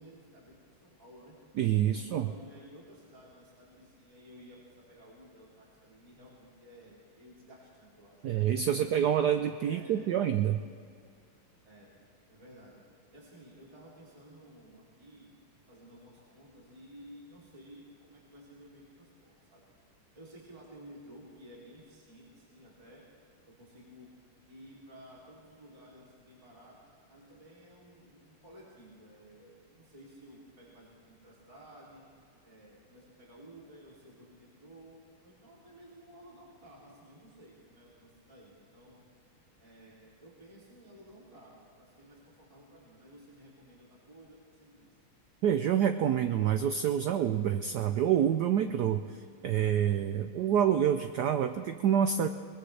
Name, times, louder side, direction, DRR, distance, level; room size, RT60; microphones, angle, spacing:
voice 1, 0.0-1.4 1.8-8.3 8.7-8.9 9.6-10.1 11.6-11.9 12.3-12.8 13.1-15.3 15.7-19.6 20.1-23.0 23.4-24.1 24.5-32.0 32.4-39.0 39.6-44.9, equal, 15° right, -6 dB, 2.9 m, -54 dB
voice 2, 1.6-2.3 8.2-10.6 45.4-49.2 49.4-52.3, right 9 dB, 85° right, 8 dB, 0.9 m, -27 dB
21.0 x 20.5 x 3.3 m, 2.3 s
omnidirectional pair, 2.4 m